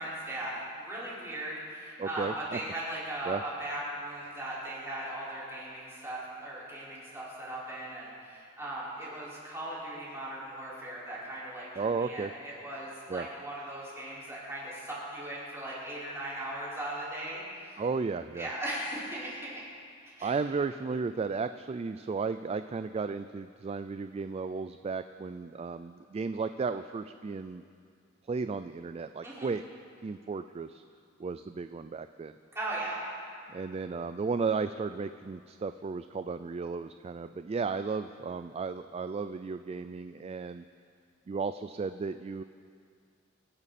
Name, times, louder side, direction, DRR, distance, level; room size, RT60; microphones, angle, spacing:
voice 1, 0.0-17.8 18.3-19.6 20.2-20.3 29.2-29.5 32.5-33.0, right 1 dB, 15° right, -8 dB, 5.0 m, -38 dB
voice 2, 2.0-2.6 3.3-3.4 11.8-12.3 13.1-13.3 17.8-18.5 20.2-27.6 28.3-29.6 30.0-30.8 31.2-32.3 33.5-40.6 41.3-42.4, right 4 dB, 30° right, 11 dB, 0.3 m, -34 dB
25.5 x 10.5 x 4.2 m, 2.3 s
head